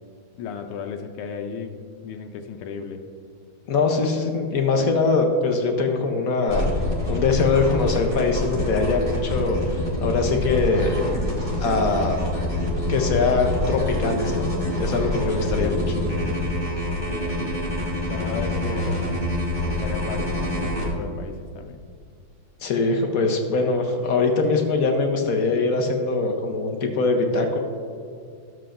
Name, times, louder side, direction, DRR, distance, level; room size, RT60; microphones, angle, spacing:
voice 1, 0.4-1.8 2.0-3.0 17.1-17.7 18.1-19.0 19.7-21.8, left 6 dB, 90° left, 5 dB, 1.5 m, -34 dB
voice 2, 3.7-6.7 7.1-11.0 11.6-12.2 12.9-14.5 14.8-16.0 22.6-27.6, left 3 dB, 65° left, 3 dB, 0.9 m, -22 dB
sound 1, 6.5-20.9, left 1 dB, 25° right, 1.9 m, -26 dB
12.5 x 7.7 x 2.5 m, 2.2 s
omnidirectional pair, 2.3 m